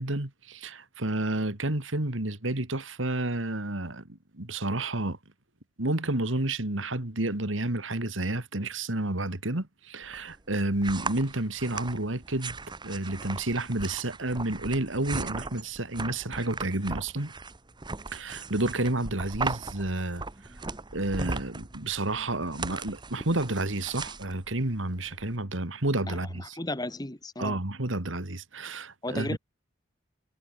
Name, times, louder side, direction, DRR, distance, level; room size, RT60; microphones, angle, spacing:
voice 1, 0.0-4.0 4.3-5.2 5.8-12.6 12.8-17.3 18.1-20.2 20.9-26.6 27.4-29.4, right 2 dB, 85° right, 2.7 m, -30 dB
sound 1, 10.0-25.3, right 3 dB, 25° right, 1.1 m, -38 dB
voice 2, 26.1-27.6 29.0-29.4, left 1 dB, 20° left, 1.5 m, -34 dB
head